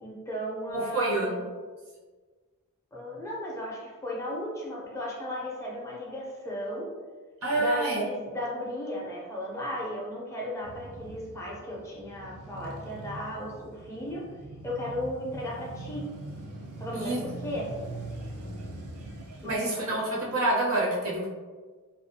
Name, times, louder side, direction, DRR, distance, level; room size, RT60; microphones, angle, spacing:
voice 1, 0.0-1.4 2.9-6.9 7.5-14.2 14.6-16.1 16.8-17.9 19.4-19.9 20.1-20.3, equal, 15° left, -4 dB, 0.4 m, -35 dB
voice 2, 0.7-1.4 7.4-8.0 16.9-17.2 19.4-21.3, right 2 dB, 70° right, -5 dB, 0.8 m, -27 dB
Male speech man speaking / Motorcycle / Idling, 10.6-19.6, right 2 dB, 90° right, 0.5 m, -42 dB
2.4 x 2.2 x 2.6 m, 1.4 s
head